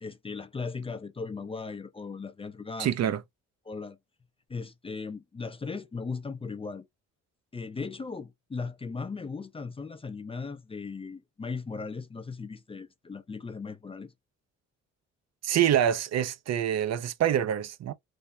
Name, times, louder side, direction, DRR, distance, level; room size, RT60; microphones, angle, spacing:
voice 1, 0.0-3.1 3.7-4.0 4.5-6.9 7.5-14.1, left 4 dB, 20° left, 0.5 m, -37 dB
voice 2, 2.8-3.2 15.4-17.9, right 10 dB, 60° right, 0.5 m, -26 dB
3.4 x 2.1 x 2.5 m
cardioid pair, 90°, 30 cm